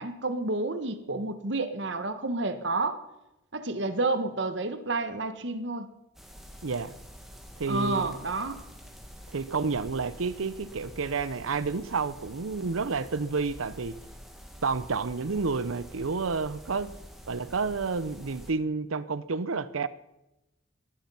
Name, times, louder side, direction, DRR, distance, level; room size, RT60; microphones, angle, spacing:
voice 1, 0.0-3.0 3.5-5.9 7.7-8.6, right 2 dB, 60° right, 11 dB, 1.3 m, -30 dB
sound 1, 6.1-18.5, equal, ahead, 1.8 m, -47 dB
voice 2, 6.6-6.9 7.6-8.1 9.3-14.0 14.6-16.9 17.3-19.9, right 4 dB, 85° right, 16 dB, 0.7 m, -30 dB
20.0 x 12.0 x 5.5 m, 0.95 s
head